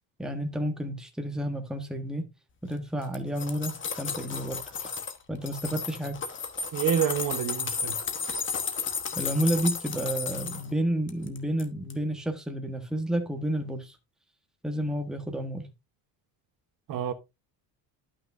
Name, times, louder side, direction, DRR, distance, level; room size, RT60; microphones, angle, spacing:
voice 1, 0.2-2.3 2.6-4.9 5.3-6.2 9.1-14.0 14.6-15.7, right 1 dB, ahead, 1.3 m, -30 dB
sound 1, 3.0-5.2 5.5-10.7 11.1-11.6 11.9-12.0, left 5 dB, 30° left, 1.2 m, -33 dB
voice 2, 6.7-7.9 16.9-17.1, right 9 dB, 50° right, 1.1 m, -27 dB
11.5 x 5.9 x 2.6 m
cardioid pair, 140°, 40 cm